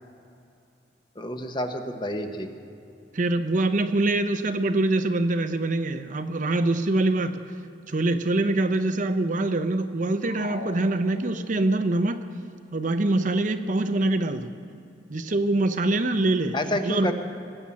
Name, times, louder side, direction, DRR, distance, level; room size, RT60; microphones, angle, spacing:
voice 1, 1.2-2.5 16.5-17.1, left 1 dB, 25° left, 6 dB, 0.9 m, -29 dB
voice 2, 3.1-7.4 7.9-12.2 12.7-14.5 15.1-16.6 16.8-17.1, right 2 dB, 45° right, 9 dB, 0.7 m, -24 dB
sound 1, 10.2-11.7, left 3 dB, 75° left, 1.8 m, -41 dB
19.5 x 7.1 x 8.6 m, 2.6 s
head